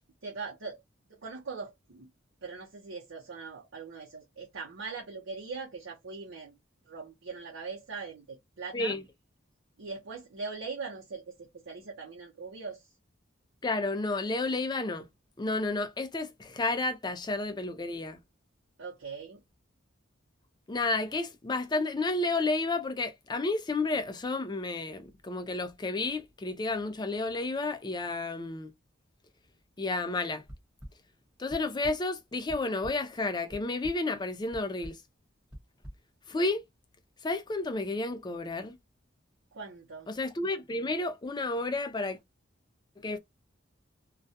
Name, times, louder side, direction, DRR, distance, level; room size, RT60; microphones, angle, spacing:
voice 1, 0.2-0.8 1.1-2.1 2.4-6.5 6.9-8.9 9.8-12.9 18.8-19.4 39.5-40.1, right 4 dB, 90° right, 0.8 m, -41 dB
voice 2, 13.6-15.1 15.4-18.2 20.7-28.7 29.8-30.4 31.4-35.0 36.3-36.6 37.2-38.7 40.1-42.2 43.0-43.2, left 2 dB, 20° left, 0.4 m, -31 dB
sound 1, 30.5-30.9 31.5-31.9 32.3-32.9 33.5-33.9 34.5-34.9 35.5-35.9, equal, 5° right, 1.1 m, -43 dB
2.3 x 2.2 x 2.7 m
head